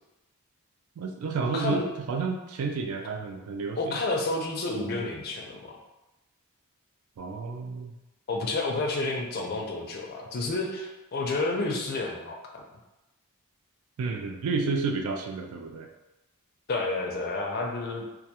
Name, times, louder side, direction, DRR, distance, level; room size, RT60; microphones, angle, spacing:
voice 1, 1.0-4.0 7.2-7.9 14.0-15.9, right 4 dB, 75° right, 4 dB, 0.3 m, -31 dB
voice 2, 1.5-1.8 3.8-5.8 8.3-12.6 16.7-18.0, left 2 dB, 45° left, 1 dB, 0.4 m, -30 dB
2.3 x 2.2 x 2.8 m, 1.0 s
head